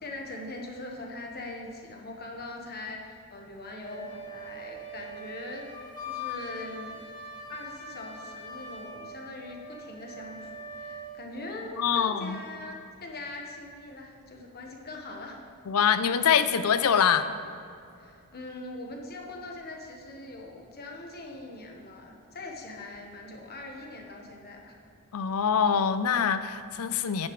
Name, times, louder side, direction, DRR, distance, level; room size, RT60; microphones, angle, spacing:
voice 1, 0.0-5.7 6.1-7.0 7.5-15.4 18.0-24.7, left 2 dB, 45° left, 1 dB, 1.3 m, -41 dB
Wind instrument woodwind instrument, 3.8-11.2, equal, 20° left, 1.3 m, -42 dB
voice 2, 11.8-12.4 15.7-17.3 25.1-27.3, left 7 dB, 75° left, 12 dB, 0.5 m, -24 dB
10.0 x 9.6 x 3.2 m, 2.5 s
head